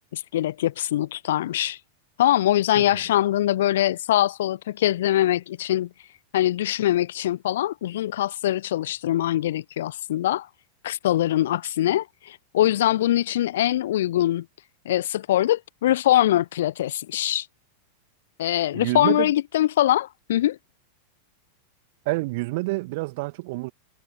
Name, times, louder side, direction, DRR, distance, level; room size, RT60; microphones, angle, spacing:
voice 1, 0.1-1.8 2.2-5.9 6.3-10.5 10.8-14.4 14.8-17.5 18.4-20.6, left 13 dB, 60° left, 1.1 m, -23 dB
voice 2, 18.7-19.3 22.1-23.7, right 24 dB, 50° right, 1.8 m, -28 dB
figure-of-eight pair, 90°, 0 cm